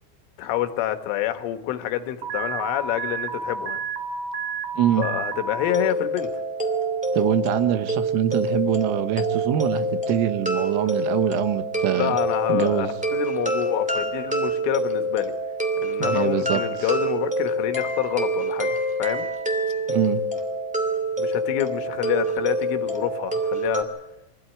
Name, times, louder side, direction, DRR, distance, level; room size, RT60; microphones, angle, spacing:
voice 1, 0.4-3.8 5.0-6.3 12.0-15.3 15.8-19.3 21.2-23.9, left 12 dB, 80° left, 8 dB, 3.8 m, -27 dB
Alarm, 2.2-5.7, right 5 dB, 60° right, 2.7 m, -30 dB
voice 2, 4.8-5.1 7.1-12.2 12.5-12.9 16.0-16.9 19.9-20.2, right 11 dB, 90° right, 10 dB, 3.8 m, -24 dB
sound 1, 5.7-23.8, right 1 dB, 10° right, 0.4 m, -26 dB
25.0 x 15.0 x 9.3 m, 0.93 s
omnidirectional pair, 5.8 m